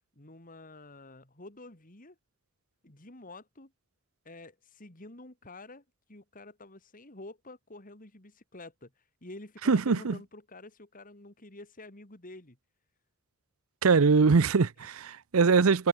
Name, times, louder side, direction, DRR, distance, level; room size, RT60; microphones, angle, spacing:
voice 1, 0.2-2.2 2.8-3.7 4.2-5.8 6.1-8.9 9.2-12.6 14.8-14.9, left 2 dB, 40° left, 2.9 m, -48 dB
voice 2, 9.7-10.2 13.8-15.9, right 4 dB, 80° right, 0.7 m, -22 dB
head